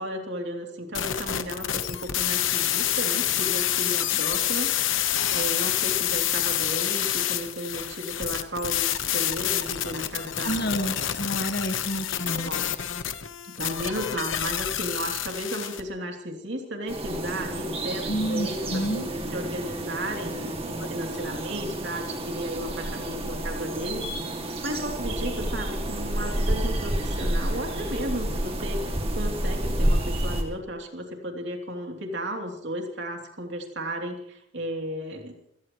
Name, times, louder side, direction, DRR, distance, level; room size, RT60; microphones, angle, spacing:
voice 1, 0.0-4.7 5.3-10.6 12.3-12.7 13.5-35.3, equal, 65° right, 2 dB, 3.0 m, -34 dB
sound 1, 0.9-15.8, left 11 dB, 85° left, 1.1 m, -27 dB
voice 2, 10.4-12.5 18.1-19.1 20.8-20.9 21.2-21.3, equal, 55° left, 9 dB, 1.4 m, -29 dB
sound 2, 16.9-30.4, right 1 dB, 30° right, 2.2 m, -29 dB
26.0 x 17.5 x 3.1 m, 0.77 s
head